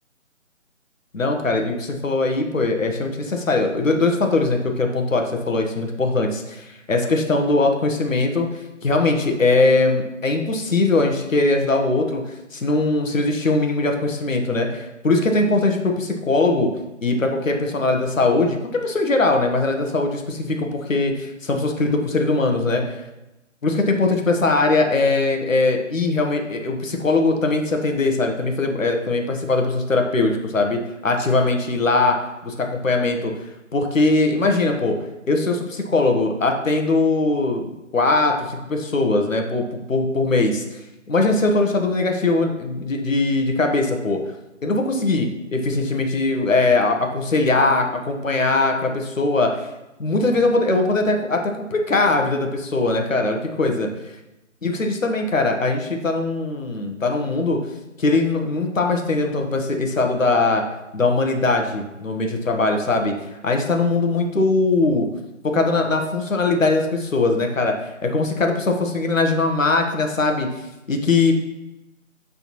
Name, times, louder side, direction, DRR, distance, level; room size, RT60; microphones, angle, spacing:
voice 1, 1.1-8.5 8.8-12.2 12.5-16.7 17.0-23.0 23.6-32.2 32.4-33.3 33.7-35.0 35.3-40.8 41.1-44.2 44.6-49.6 50.0-53.9 54.6-57.6 58.0-60.6 60.9-63.2 63.4-65.1 65.4-70.5 70.9-71.3, left 3 dB, 70° left, 3 dB, 1.3 m, -21 dB
11.0 x 4.0 x 3.1 m, 0.97 s
figure-of-eight pair, 155°, 40 cm